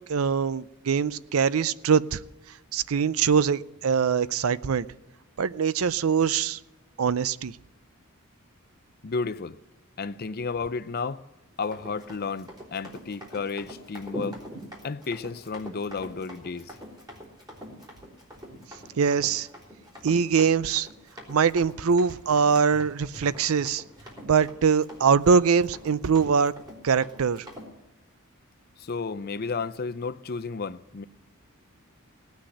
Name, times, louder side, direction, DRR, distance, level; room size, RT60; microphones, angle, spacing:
voice 1, 0.1-2.2 2.7-4.9 5.4-6.6 7.0-7.6 19.0-19.5 20.0-20.9 21.3-23.8 24.2-26.5 26.8-27.4, right 6 dB, 75° right, 0.5 m, -23 dB
voice 2, 9.0-9.6 10.0-11.2 11.6-14.4 14.8-16.8 28.8-31.0, left 4 dB, 45° left, 0.6 m, -32 dB
Run, 11.6-27.7, equal, 20° right, 3.7 m, -44 dB
18.0 x 6.3 x 9.8 m
head